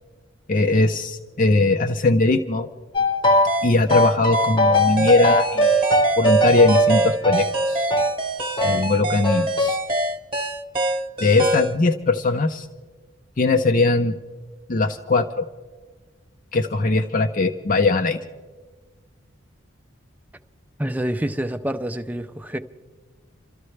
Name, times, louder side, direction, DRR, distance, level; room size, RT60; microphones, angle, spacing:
voice 1, 0.5-2.7 3.6-5.8 6.2-7.9 8.6-9.8 11.2-12.7 13.4-14.1 14.7-15.5 16.5-18.2, left 3 dB, 40° left, 0.6 m, -20 dB
sound 1, 2.9-3.6 3.9-8.2 8.6-8.8 9.2-9.8, equal, 25° left, 0.9 m, -20 dB
sound 2, 3.5-11.8, right 1 dB, 25° right, 1.2 m, -25 dB
voice 2, 20.8-22.6, right 1 dB, 10° right, 0.5 m, -27 dB
28.0 x 13.5 x 3.3 m
head